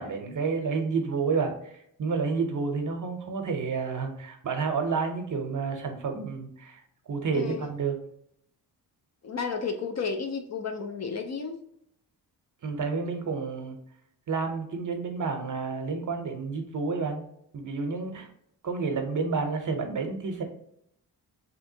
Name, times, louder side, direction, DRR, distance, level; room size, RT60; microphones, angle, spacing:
voice 1, 0.0-1.7 2.0-6.8 7.1-8.0 12.6-13.8 14.3-17.3 17.5-18.3 18.6-20.4, right 4 dB, 50° right, 0.7 m, -30 dB
voice 2, 7.3-7.7 9.2-11.6, left 5 dB, 40° left, 0.5 m, -32 dB
3.3 x 2.8 x 2.7 m
cardioid pair, 80°, 40 cm